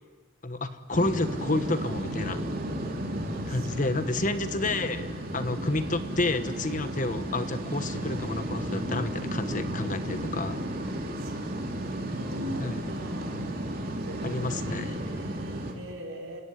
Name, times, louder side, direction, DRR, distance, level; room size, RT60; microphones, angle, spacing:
voice 1, 0.4-2.4 3.5-10.7 12.6-12.8 14.2-15.0, left 2 dB, 40° left, 10 dB, 1.3 m, -30 dB
sound 1, 0.9-15.7, right 1 dB, 45° right, 3.5 m, -33 dB
voice 2, 3.3-4.7 11.2-13.4 13.8-16.4, equal, 80° right, 2 dB, 4.8 m, -42 dB
29.0 x 17.5 x 9.9 m, 1.5 s
head